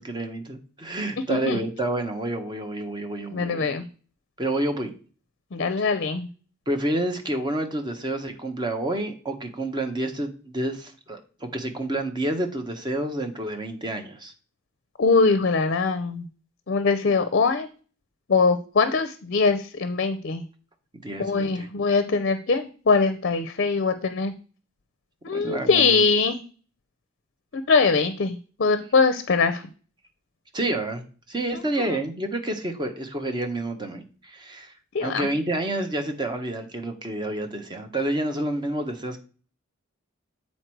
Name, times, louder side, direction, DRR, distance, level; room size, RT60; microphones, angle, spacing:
voice 1, 0.0-3.7 4.4-4.9 6.7-14.3 21.0-21.7 25.3-26.0 30.5-31.0 31.3-34.7 35.0-39.2, right 1 dB, 20° right, 6 dB, 0.9 m, -29 dB
voice 2, 1.3-1.6 3.3-3.8 5.5-6.3 15.0-16.2 16.7-17.7 18.3-20.4 21.2-24.3 25.2-26.4 27.5-29.6 31.8-32.0 34.9-35.3, left 4 dB, 55° left, 10 dB, 0.5 m, -22 dB
7.9 x 4.2 x 4.5 m, 0.39 s
head